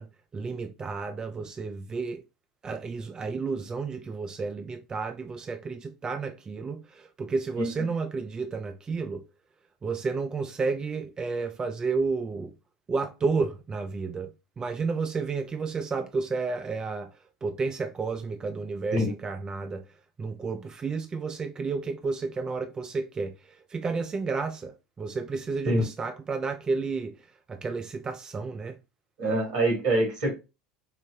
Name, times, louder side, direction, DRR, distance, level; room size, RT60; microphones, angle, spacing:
voice 1, 0.0-2.2 2.6-9.2 9.8-12.5 12.9-17.1 17.4-19.8 20.2-28.8, right 4 dB, 20° right, 0.3 m, -31 dB
voice 2, 29.2-30.3, right 1 dB, 70° right, 1.9 m, -24 dB
4.9 x 2.0 x 2.5 m
figure-of-eight pair, 75°, 3 cm